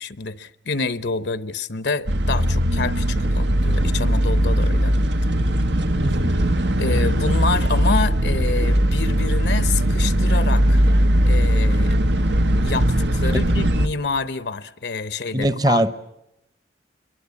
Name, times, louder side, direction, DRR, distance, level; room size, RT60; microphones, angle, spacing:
voice 1, 0.0-4.9 6.8-10.8 11.3-12.0 12.6-15.8, left 4 dB, 70° left, 0.9 m, -27 dB
sound 1, 2.1-13.9, equal, 75° right, 1.1 m, -19 dB
voice 2, 6.0-6.4 15.3-15.9, right 1 dB, 25° right, 0.9 m, -21 dB
27.0 x 22.5 x 8.5 m
head